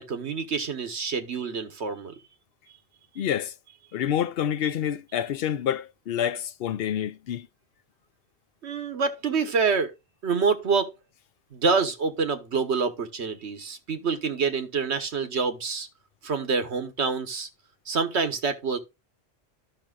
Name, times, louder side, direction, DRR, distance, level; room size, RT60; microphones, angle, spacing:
voice 1, 0.0-2.2 8.6-9.9 10.2-10.9 11.5-15.9 16.2-17.5 17.9-18.8, right 5 dB, 75° right, 1.4 m, -27 dB
voice 2, 3.2-3.5 3.9-7.5, left 9 dB, 65° left, 0.8 m, -28 dB
13.5 x 6.0 x 2.3 m
omnidirectional pair, 1.1 m